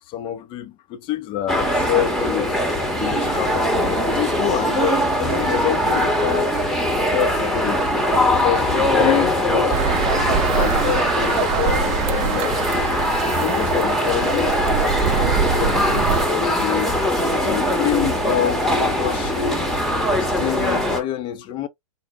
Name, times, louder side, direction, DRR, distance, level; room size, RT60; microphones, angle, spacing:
voice 1, 0.1-6.5 7.1-7.8 8.4-12.9 13.4-17.0 17.4-19.8 20.2-21.7, left 11 dB, 30° left, 0.5 m, -27 dB
sound 1, 1.5-21.0, left 1 dB, ahead, 0.9 m, -21 dB
sound 2, 9.7-16.3, right 10 dB, 35° right, 0.5 m, -25 dB
4.0 x 2.1 x 3.3 m
hypercardioid pair, 115°, 17 cm